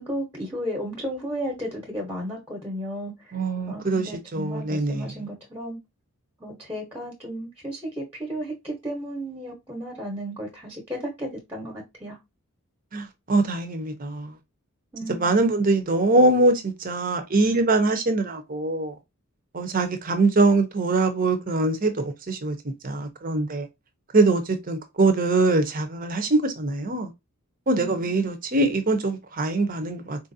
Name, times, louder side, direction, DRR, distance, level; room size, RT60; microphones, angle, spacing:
voice 1, 0.0-3.1 3.7-5.8 6.4-12.2 14.9-15.5 27.7-28.3, equal, 10° right, 1.0 m, -34 dB
voice 2, 3.3-5.1 12.9-14.3 15.1-18.9 19.5-22.6 22.8-23.7 24.1-27.1 27.7-30.3, right 2 dB, 40° right, 0.8 m, -23 dB
4.4 x 2.5 x 2.7 m
head